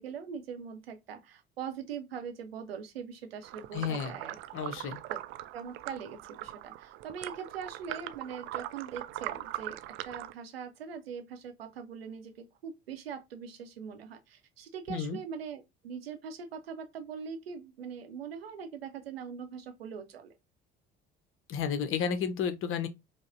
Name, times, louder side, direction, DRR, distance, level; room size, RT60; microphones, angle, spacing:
voice 1, 0.0-4.4 5.1-5.2 5.5-20.3, right 7 dB, 80° right, 0.6 m, -42 dB
sound 1, 3.4-10.3, right 14 dB, 45° right, 0.4 m, -41 dB
voice 2, 3.7-4.1 4.5-5.0 14.9-15.2 21.5-22.9, left 7 dB, 45° left, 0.7 m, -32 dB
4.9 x 2.1 x 2.5 m
figure-of-eight pair, 55°, 30 cm